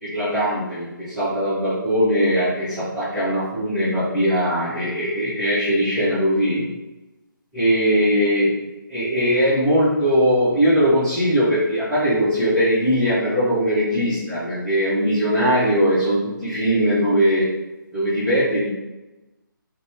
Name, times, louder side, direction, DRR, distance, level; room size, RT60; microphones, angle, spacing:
voice 1, 0.0-6.6 7.5-8.5 8.9-17.4 17.9-18.7, equal, 5° right, -17 dB, 1.0 m, -20 dB
2.9 x 2.2 x 3.4 m, 1.0 s
figure-of-eight pair, 145°, 11 cm